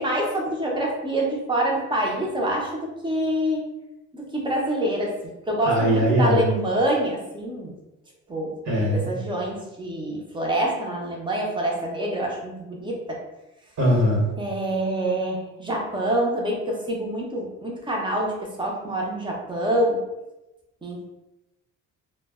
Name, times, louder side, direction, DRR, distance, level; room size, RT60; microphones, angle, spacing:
voice 1, 0.0-3.7 4.1-7.7 8.3-8.6 8.9-13.2 14.4-20.0 20.8-21.1, right 1 dB, 15° right, -1 dB, 0.4 m, -26 dB
voice 2, 5.6-6.4 8.6-9.1 13.8-14.2, equal, 65° right, -3 dB, 0.9 m, -20 dB
2.1 x 2.0 x 3.4 m, 0.99 s
cardioid pair, 140°, 31 cm